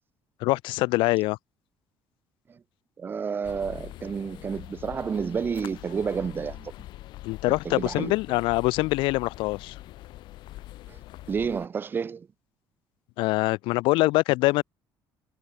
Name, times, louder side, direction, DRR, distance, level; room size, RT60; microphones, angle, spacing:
voice 1, 0.4-1.4 7.2-9.7 13.2-14.6, left 21 dB, 80° left, 2.5 m, -24 dB
voice 2, 3.0-6.7 7.5-8.2 10.9-11.0 11.3-12.3, right 6 dB, 25° right, 2.5 m, -30 dB
sound 1, 3.4-11.7, left 16 dB, 65° left, 4.7 m, -43 dB
cardioid pair, 160°, 8 cm